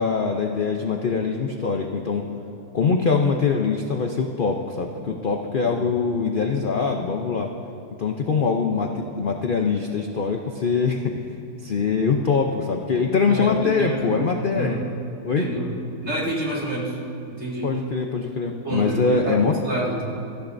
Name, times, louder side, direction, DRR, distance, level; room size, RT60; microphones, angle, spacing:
voice 1, 0.0-2.2 2.7-7.5 8.0-11.3 11.6-14.8 15.2-15.5 17.6-19.5, left 5 dB, 55° left, 2 dB, 0.5 m, -23 dB
voice 2, 13.3-14.2 14.5-14.8 15.4-15.7 16.0-17.0 17.3-17.7 18.6-20.0, right 2 dB, 40° right, -5 dB, 2.7 m, -28 dB
23.0 x 14.0 x 2.6 m, 2.7 s
omnidirectional pair, 1.7 m